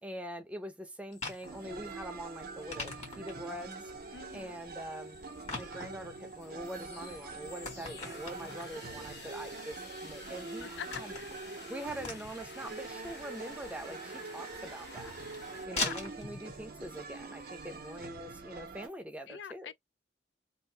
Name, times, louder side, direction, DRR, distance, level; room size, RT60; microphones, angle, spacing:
voice 1, 0.0-3.9 4.3-5.2 5.5-11.2 11.7-15.1 15.7-19.7, right 1 dB, 10° right, 0.6 m, -44 dB
sound 1, 1.1-18.1, left 3 dB, 40° left, 1.6 m, -45 dB
sound 2, 1.4-18.9, right 4 dB, 55° right, 0.6 m, -45 dB
voice 2, 4.1-4.6 10.6-11.3 14.9-15.1 15.7-15.9 19.3-19.7, left 8 dB, 85° left, 0.4 m, -44 dB
sound 3, 6.4-15.7, left 3 dB, 70° left, 1.3 m, -51 dB
2.7 x 2.6 x 3.2 m
head